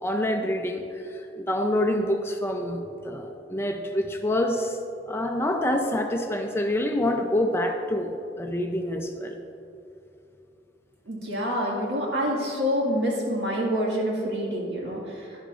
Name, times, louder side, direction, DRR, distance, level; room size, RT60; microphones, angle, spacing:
voice 1, 0.0-0.8 1.4-4.8 5.1-8.1 8.4-9.4, left 1 dB, 15° left, 4 dB, 0.5 m, -26 dB
voice 2, 11.1-15.5, equal, 70° right, -3 dB, 2.0 m, -27 dB
11.5 x 10.0 x 2.5 m, 2.7 s
head